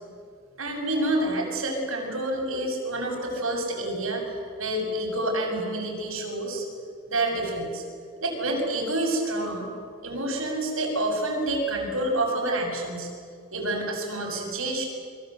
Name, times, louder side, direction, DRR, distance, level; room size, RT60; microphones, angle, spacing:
voice 1, 0.6-6.7 7.1-7.8 8.2-9.7 10.0-13.1 13.5-14.9, right 1 dB, 90° right, 1 dB, 7.1 m, -28 dB
28.5 x 23.0 x 8.1 m, 2.1 s
head